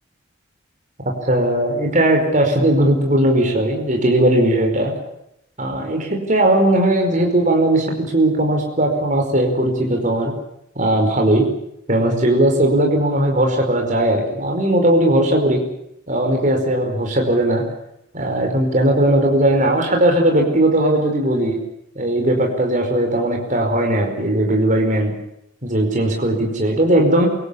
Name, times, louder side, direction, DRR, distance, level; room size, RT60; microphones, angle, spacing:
voice 1, 1.2-4.9 5.6-10.3 10.7-11.5 11.9-15.6 16.1-17.6 18.1-21.6 21.9-25.1 25.6-27.3, right 1 dB, 40° right, 2 dB, 5.1 m, -18 dB
28.0 x 17.5 x 8.4 m, 0.80 s
head